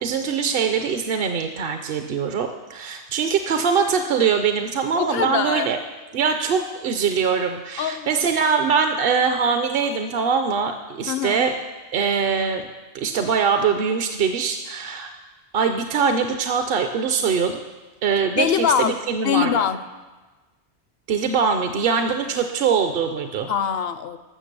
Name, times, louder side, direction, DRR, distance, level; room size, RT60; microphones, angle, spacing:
voice 1, 0.0-5.8 6.1-11.5 11.9-12.7 12.9-15.1 15.5-17.6 18.0-19.5 21.1-23.5, right 6 dB, 60° right, 6 dB, 0.8 m, -22 dB
voice 2, 5.0-5.7 7.8-8.3 11.1-11.4 18.4-19.8 23.5-24.2, left 8 dB, 70° left, 12 dB, 0.8 m, -23 dB
12.0 x 6.7 x 6.7 m, 1.2 s
omnidirectional pair, 1.1 m